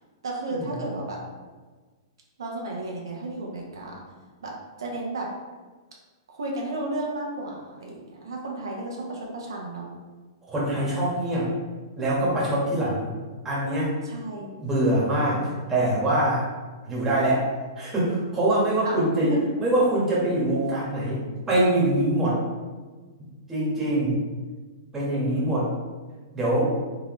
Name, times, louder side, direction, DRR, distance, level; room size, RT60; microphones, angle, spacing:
voice 1, 0.2-1.2 2.4-4.0 4.4-4.5 4.8-5.3 6.3-9.9 14.0-14.5 18.8-19.4 25.3-25.6, right 2 dB, 85° right, -2 dB, 0.9 m, -33 dB
voice 2, 10.5-11.5 12.0-13.1 13.4-13.9 14.6-16.5 16.9-17.4 17.8-19.3 19.6-22.4 23.5-24.2 24.9-25.7 26.3-26.7, right 1 dB, 15° right, -6 dB, 1.4 m, -24 dB
3.6 x 3.1 x 3.1 m, 1.4 s
hypercardioid pair, 135°, 2 cm